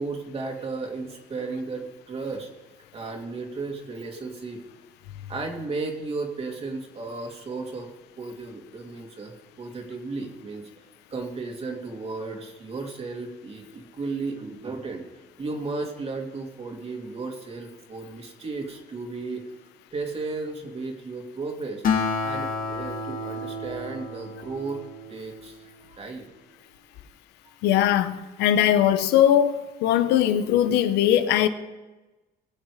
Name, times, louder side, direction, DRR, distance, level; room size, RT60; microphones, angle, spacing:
voice 1, 0.0-2.5 2.9-4.6 5.3-7.9 8.2-15.0 15.4-19.4 19.9-21.8 22.2-24.8 25.1-26.3 26.9-27.1, right 3 dB, 35° right, 2.7 m, -34 dB
Acoustic guitar, 21.8-25.6, left 4 dB, 55° left, 2.2 m, -30 dB
voice 2, 27.6-29.5 29.8-31.5, left 11 dB, 90° left, 0.9 m, -20 dB
21.5 x 7.4 x 5.0 m
cardioid pair, 110°, 17 cm